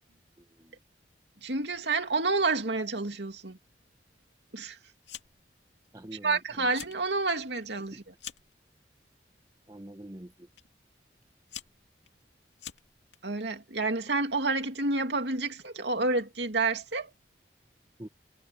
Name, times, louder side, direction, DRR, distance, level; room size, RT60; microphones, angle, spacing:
voice 1, 0.4-0.8 5.9-6.7 7.9-8.0 9.7-10.5 18.0-18.1, right 1 dB, 20° right, 1.1 m, -46 dB
voice 2, 1.4-3.6 4.5-4.8 6.2-8.0 13.2-17.1, right 3 dB, 75° right, 2.6 m, -29 dB
Fire, 5.0-5.5 5.8-6.3 6.6-7.0 7.4-8.6 9.4-9.7 10.6-10.7 11.2-13.2, left 10 dB, 85° left, 2.5 m, -45 dB
head